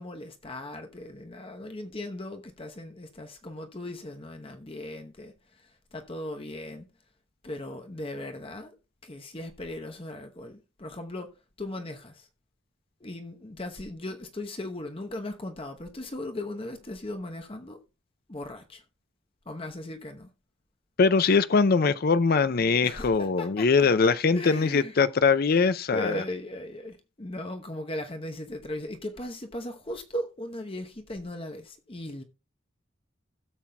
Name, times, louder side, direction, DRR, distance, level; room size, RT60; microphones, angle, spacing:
voice 1, 0.0-6.9 7.4-8.7 9.0-11.3 11.6-12.3 13.0-17.8 18.3-18.8 19.5-20.3 22.8-23.9 24.3-24.9 25.9-32.2, left 1 dB, 30° left, 0.9 m, -38 dB
voice 2, 21.0-26.2, left 4 dB, 50° left, 0.5 m, -22 dB
16.5 x 7.2 x 2.3 m
head